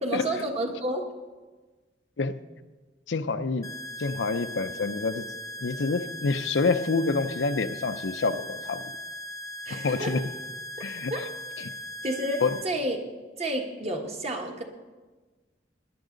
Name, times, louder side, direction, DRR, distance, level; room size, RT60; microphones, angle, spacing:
voice 1, 0.0-1.1 9.6-10.2 11.1-11.2 12.0-13.0 13.4-14.6, right 1 dB, 35° right, 3 dB, 1.4 m, -30 dB
voice 2, 3.1-3.7 4.0-5.3 5.6-8.8 9.7-10.2 10.8-11.3 11.6-11.7 12.4-12.6, left 4 dB, 85° left, 11 dB, 0.6 m, -27 dB
sound 1, 3.6-12.6, left 1 dB, 20° left, 0.6 m, -39 dB
19.0 x 11.0 x 3.9 m, 1.3 s
head